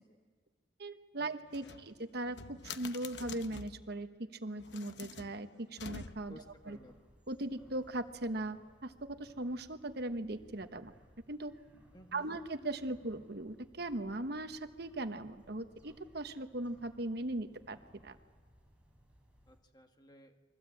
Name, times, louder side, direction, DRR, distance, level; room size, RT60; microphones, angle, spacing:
voice 1, 0.8-4.1 4.4-6.3 6.7-6.8 7.3-10.9 11.3-11.5 12.1-17.8 18.0-18.2, right 1 dB, 55° right, 9 dB, 1.1 m, -39 dB
sound 1, 1.5-3.9 4.5-6.5, left 5 dB, 60° left, 1.0 m, -48 dB
sound 2, 6.2-19.6, equal, 5° right, 4.5 m, -63 dB
voice 2, 6.3-7.0 11.9-12.3 19.5-20.4, equal, 20° left, 5 dB, 1.6 m, -56 dB
29.5 x 23.0 x 8.4 m, 1.5 s
head